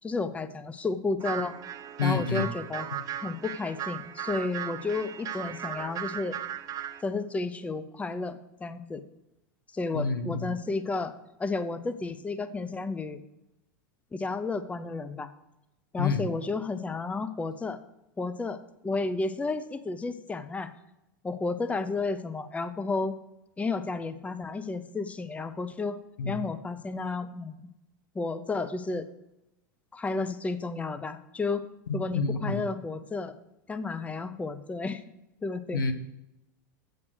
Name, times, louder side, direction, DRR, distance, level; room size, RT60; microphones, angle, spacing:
voice 1, 0.0-1.6 2.0-2.9 3.2-6.4 7.0-9.0 9.7-11.1 11.4-13.2 14.1-15.3 15.9-17.8 18.2-18.6 18.8-20.7 21.2-23.1 23.6-26.0 26.3-27.6 28.1-29.1 29.9-31.7 31.9-33.3 33.7-35.0 35.4-35.8, left 3 dB, 10° left, 12 dB, 0.7 m, -32 dB
sound 1, 1.2-7.0, right 10 dB, 35° right, 0.8 m, -37 dB
voice 2, 2.0-2.5 9.9-10.5 16.0-16.3 26.2-26.4 32.1-32.6 35.7-35.9, left 4 dB, 90° left, 10 dB, 1.1 m, -28 dB
8.0 x 7.4 x 6.2 m, 0.91 s
hypercardioid pair, 105°, 11 cm